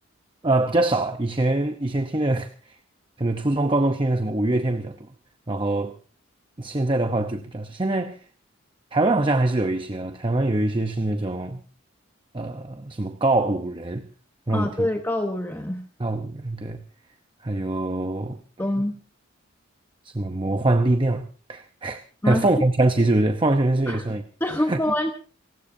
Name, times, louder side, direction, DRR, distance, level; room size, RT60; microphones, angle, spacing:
voice 1, 0.4-2.8 3.2-5.0 5.5-6.0 6.6-8.2 8.9-11.6 12.3-14.1 14.5-14.9 16.0-16.8 17.4-18.4 20.0-24.2 24.7-24.8, right 2 dB, 25° right, 0.8 m, -23 dB
voice 2, 14.5-15.8 18.6-19.0 22.2-22.5 23.9-24.0 24.4-25.1, left 1 dB, 10° left, 1.1 m, -25 dB
29.0 x 16.0 x 2.7 m
head